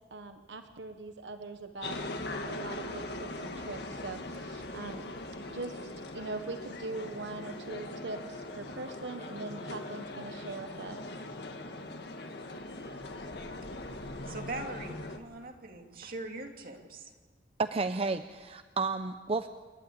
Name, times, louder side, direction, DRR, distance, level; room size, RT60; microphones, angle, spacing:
voice 1, 0.1-2.0 2.4-5.0 5.5-11.0, right 3 dB, 80° right, 7 dB, 1.1 m, -41 dB
sound 1, 1.8-15.2, left 2 dB, 65° left, 1.7 m, -41 dB
voice 2, 14.3-17.1, right 2 dB, 55° right, 2 dB, 2.6 m, -41 dB
voice 3, 17.6-19.5, right 3 dB, 35° right, 9 dB, 0.6 m, -31 dB
29.0 x 11.5 x 8.6 m, 1.5 s
head